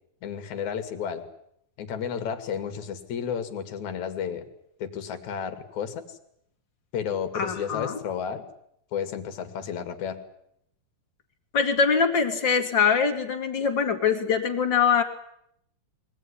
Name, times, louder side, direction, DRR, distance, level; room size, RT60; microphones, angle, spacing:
voice 1, 0.2-1.2 1.8-4.4 4.8-6.2 6.9-8.4 8.9-10.2, left 7 dB, 55° left, 9 dB, 3.2 m, -32 dB
voice 2, 7.3-8.0 11.5-15.0, left 6 dB, 35° left, 5 dB, 2.5 m, -23 dB
23.0 x 18.0 x 10.0 m, 0.74 s
omnidirectional pair, 4.2 m